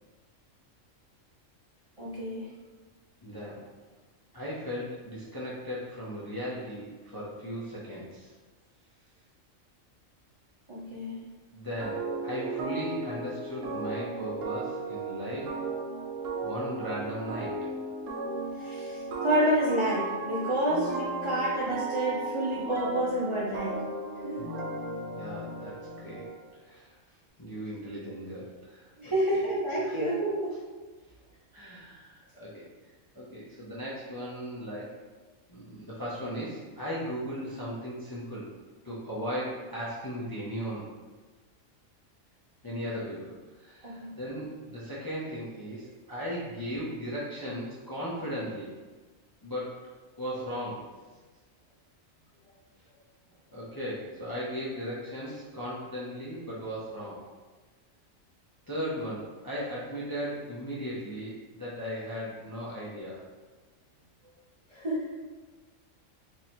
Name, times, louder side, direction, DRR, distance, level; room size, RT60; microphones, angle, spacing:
voice 1, 2.0-2.4 10.7-11.2 18.6-23.7 24.2-24.4 29.0-30.5 43.8-44.1 64.7-65.0, right 1 dB, 35° right, -8 dB, 0.6 m, -29 dB
voice 2, 3.2-3.6 4.3-8.3 11.5-15.6 16.4-17.5 25.1-25.8 26.0-26.2 26.6-26.9 27.4-29.4 29.8-29.9 31.5-32.6 33.1-35.0 35.5-38.5 38.8-40.8 42.6-43.3 43.6-48.7 49.4-49.8 50.2-50.9 53.5-57.2 58.7-63.2, equal, 25° left, -7 dB, 0.5 m, -37 dB
sound 1, 11.8-26.4, right 3 dB, 80° right, 0.9 m, -35 dB
3.1 x 2.7 x 4.3 m, 1.3 s
omnidirectional pair, 1.4 m